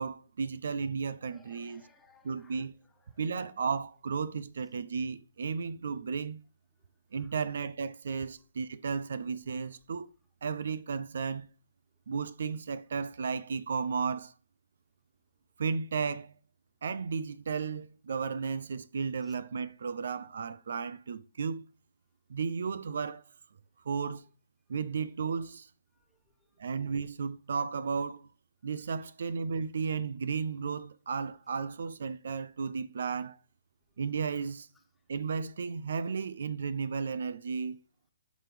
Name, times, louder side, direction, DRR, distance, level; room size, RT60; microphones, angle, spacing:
voice 1, 0.0-1.9 2.2-2.8 3.2-6.4 7.1-10.1 10.4-11.5 12.1-14.3 15.6-16.3 16.8-21.6 22.3-23.2 23.9-24.3 24.7-25.7 26.6-28.3 28.6-33.4 34.0-34.7 35.1-37.8, right 5 dB, 70° right, 0.5 m, -34 dB
voice 2, 1.2-2.7 2.9-3.4 7.1-7.4 19.2-19.4 25.9-26.6, left 3 dB, 10° left, 1.4 m, -64 dB
9.2 x 6.1 x 3.3 m
hypercardioid pair, 145°, 0 cm